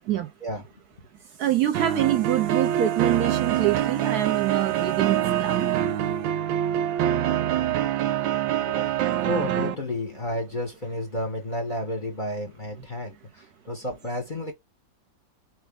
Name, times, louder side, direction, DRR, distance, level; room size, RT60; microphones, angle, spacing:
voice 1, 1.4-5.7, right 12 dB, 65° right, 1.1 m, -25 dB
sound 1, 1.7-9.8, right 11 dB, 85° right, 1.3 m, -25 dB
voice 2, 9.2-14.5, left 1 dB, 30° left, 1.0 m, -31 dB
4.6 x 3.0 x 3.5 m
omnidirectional pair, 2.0 m